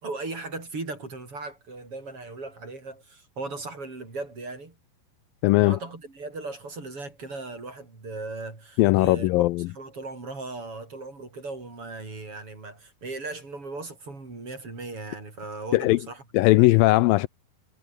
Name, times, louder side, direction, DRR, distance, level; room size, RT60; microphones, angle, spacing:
voice 1, 0.0-4.8 5.6-9.3 9.7-16.2 16.6-16.8, right 3 dB, 35° right, 6.5 m, -37 dB
voice 2, 5.4-5.8 8.8-9.7 15.7-16.0 16.3-17.3, left 19 dB, 80° left, 2.2 m, -19 dB
omnidirectional pair, 4.3 m